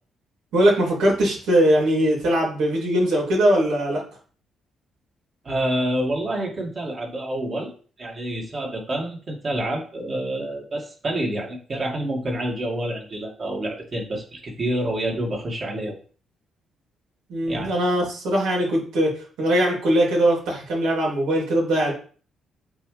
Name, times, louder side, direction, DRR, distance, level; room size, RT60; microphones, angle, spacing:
voice 1, 0.5-4.0 17.3-19.1 19.4-21.9, right 1 dB, 85° right, -3 dB, 3.0 m, -20 dB
voice 2, 5.4-7.7 8.0-16.0 17.5-17.7, right 1 dB, 40° right, -1 dB, 2.3 m, -28 dB
7.9 x 3.6 x 3.4 m, 0.41 s
cardioid pair, 90°, 0 cm